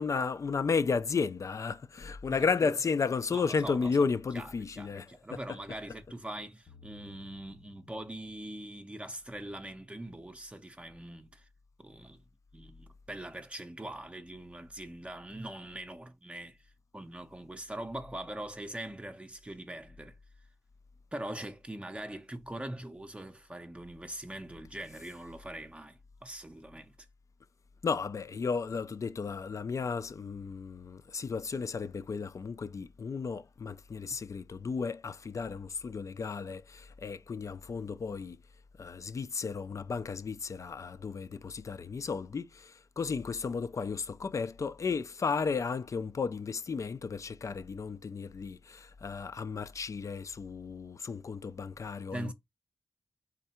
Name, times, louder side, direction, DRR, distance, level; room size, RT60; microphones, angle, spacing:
voice 1, 0.0-5.4 27.8-38.4 38.8-52.3, left 5 dB, 50° left, 0.4 m, -33 dB
voice 2, 3.3-4.0 4.3-11.5 11.8-12.2 12.5-16.6 16.9-20.2 21.1-27.0 52.1-52.3, right 1 dB, 15° right, 0.6 m, -42 dB
sound 1, 6.7-9.1, left 4 dB, 70° left, 0.9 m, -59 dB
3.7 x 3.3 x 4.3 m
cardioid pair, 80°, 7 cm